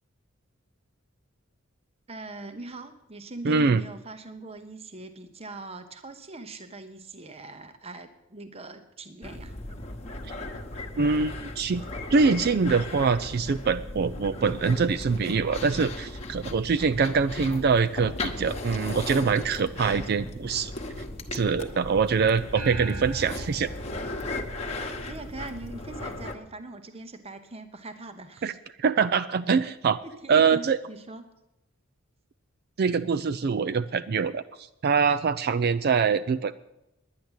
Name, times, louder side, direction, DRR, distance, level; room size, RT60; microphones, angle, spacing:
voice 1, 2.1-9.5 24.8-28.6 29.6-29.7 30.0-31.2, right 2 dB, 30° right, 9 dB, 0.9 m, -42 dB
voice 2, 3.4-3.8 11.0-11.8 12.1-20.7 21.3-23.7 28.4-28.5 28.8-30.0 30.3-30.8 32.8-34.4 34.8-36.5, right 5 dB, 45° right, 11 dB, 0.4 m, -24 dB
sound 1, 9.2-26.4, left 2 dB, 30° left, 1.2 m, -37 dB
sound 2, 22.6-25.2, right 4 dB, 80° right, 0.9 m, -39 dB
10.5 x 10.0 x 8.1 m, 0.89 s
head